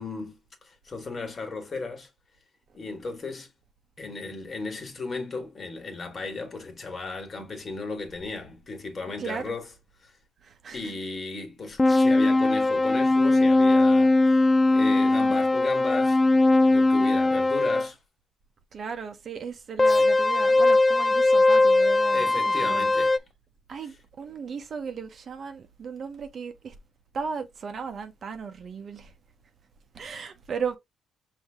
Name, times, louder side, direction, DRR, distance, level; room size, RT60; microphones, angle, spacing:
voice 1, 0.0-2.1 2.7-3.5 4.0-9.7 10.0-10.1 10.7-14.4 14.7-18.0 22.1-23.2, left 3 dB, 40° left, 1.6 m, -35 dB
voice 2, 9.2-9.5 10.4-10.9 18.7-22.9 23.7-26.7 27.1-29.1 29.9-30.8, right 6 dB, 50° right, 0.8 m, -36 dB
sound 1, 11.8-17.9 19.8-23.2, left 2 dB, 20° left, 0.3 m, -20 dB
5.4 x 2.7 x 3.5 m
cardioid pair, 90°, 0 cm